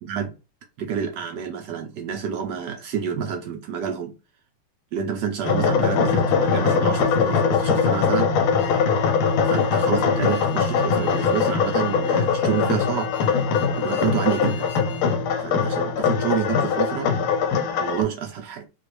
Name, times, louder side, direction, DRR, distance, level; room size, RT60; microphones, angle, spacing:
voice 1, 0.0-0.3 0.8-4.1 4.9-8.3 9.4-13.1 13.8-14.7 15.4-17.1 17.8-18.7, right 8 dB, 75° right, 1.0 m, -28 dB
sound 1, 5.4-18.0, left 5 dB, 80° left, 1.5 m, -21 dB
sound 2, 8.6-15.2, left 7 dB, 60° left, 1.0 m, -43 dB
4.3 x 2.4 x 3.2 m
omnidirectional pair, 2.4 m